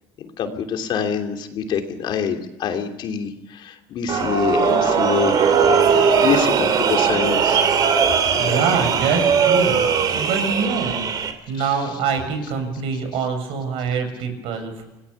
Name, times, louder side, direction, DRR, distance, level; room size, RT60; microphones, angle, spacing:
voice 1, 0.4-5.4 6.1-7.6 8.4-8.6, left 7 dB, 50° left, 5 dB, 2.9 m, -25 dB
sound 1, 4.1-11.3, right 6 dB, 40° right, 2.9 m, -19 dB
voice 2, 8.3-9.9 10.1-14.8, right 5 dB, 70° right, 6 dB, 6.8 m, -25 dB
27.5 x 18.5 x 7.1 m, 1.0 s
cardioid pair, 155°, 10 cm